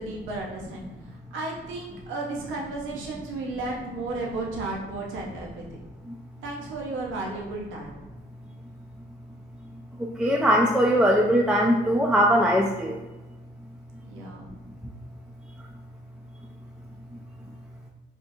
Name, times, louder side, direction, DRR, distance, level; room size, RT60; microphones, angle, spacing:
voice 1, 0.0-5.8 6.4-7.9 14.0-14.5, right 2 dB, 85° right, -1 dB, 0.7 m, -34 dB
voice 2, 10.2-13.0, equal, 5° right, -1 dB, 0.3 m, -20 dB
3.5 x 2.5 x 2.7 m, 1.1 s
cardioid pair, 90°, 20 cm